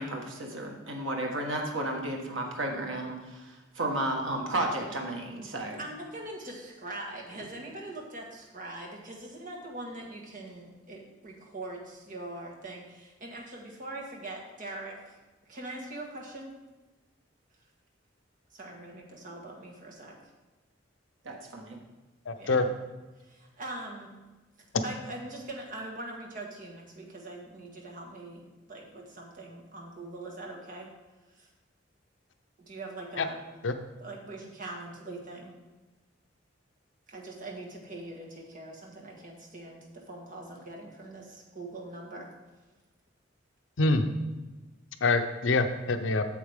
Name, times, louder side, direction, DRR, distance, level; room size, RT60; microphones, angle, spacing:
voice 1, 0.0-5.8 21.2-21.8, right 1 dB, 85° right, 1 dB, 1.5 m, -33 dB
voice 2, 5.8-15.2 15.4-16.6 18.5-20.1 22.4-22.7 23.2-24.1 24.8-30.9 31.3-31.5 32.6-33.4 34.0-35.5 37.1-42.3, right 2 dB, 45° right, -1 dB, 1.6 m, -42 dB
voice 3, 22.3-22.6 33.2-33.3 33.6-33.7 43.8-44.0 45.0-46.2, left 3 dB, 75° left, 8 dB, 0.7 m, -25 dB
8.3 x 7.4 x 3.6 m, 1.2 s
head